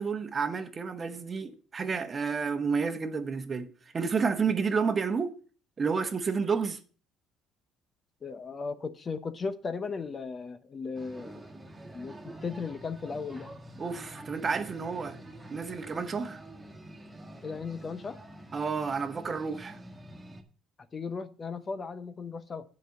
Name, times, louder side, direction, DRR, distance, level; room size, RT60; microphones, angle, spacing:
voice 1, 0.0-3.7 3.9-5.3 5.8-6.8 13.8-15.2 15.5-16.4 18.5-19.8, right 5 dB, 30° right, 1.1 m, -30 dB
voice 2, 8.2-11.4 11.9-13.5 17.4-18.2 20.9-22.6, left 4 dB, 30° left, 0.8 m, -36 dB
sound 1, 10.9-20.4, right 1 dB, 15° right, 1.7 m, -47 dB
9.2 x 5.3 x 7.7 m
cardioid pair, 110°, 0 cm